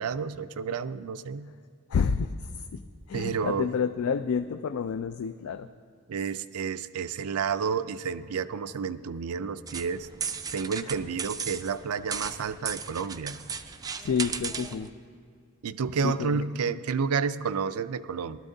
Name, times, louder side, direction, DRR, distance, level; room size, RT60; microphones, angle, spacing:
voice 1, 0.0-1.5 3.1-3.7 6.1-10.1 10.5-13.4 15.6-18.4, right 6 dB, 80° right, 13 dB, 0.4 m, -30 dB
voice 2, 1.9-2.4 2.7-2.8 3.1-5.7 14.0-14.9 16.0-16.4, left 6 dB, 65° left, 10 dB, 0.3 m, -29 dB
sound 1, 9.7-14.9, right 6 dB, 15° right, 0.3 m, -36 dB
19.0 x 12.5 x 2.7 m, 2.4 s
head